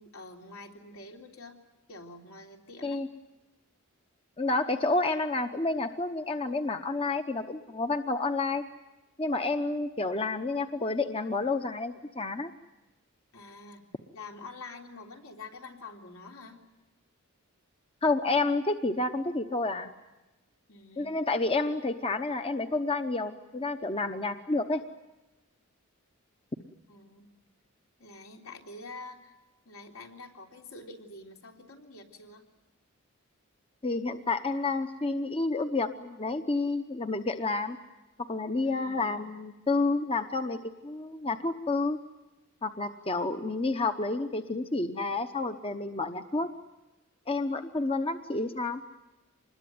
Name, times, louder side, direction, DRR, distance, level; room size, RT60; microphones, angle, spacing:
voice 1, 0.0-1.6 1.9-3.0 13.3-13.8 14.1-16.6 20.7-21.2 26.9-27.3 28.0-29.4 29.7-32.4 38.6-39.2, left 3 dB, 75° left, 1 dB, 3.6 m, -47 dB
voice 2, 4.4-8.6 9.2-12.5 18.0-19.9 21.0-24.8 33.8-37.8 38.2-42.0 42.6-46.5 47.3-48.8, left 3 dB, 25° left, 8 dB, 0.9 m, -30 dB
25.5 x 21.0 x 9.4 m, 1.0 s
head